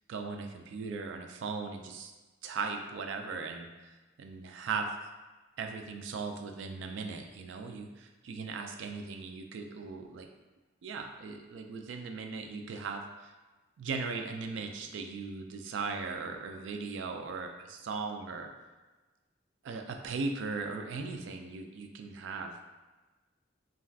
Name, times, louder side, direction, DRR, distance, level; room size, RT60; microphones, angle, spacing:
voice 1, 0.1-2.1 2.4-4.9 5.6-10.3 10.8-13.3 13.8-18.5 19.6-22.5, right 4 dB, 75° right, 5 dB, 0.3 m, -38 dB
2.3 x 2.3 x 3.4 m, 1.2 s
head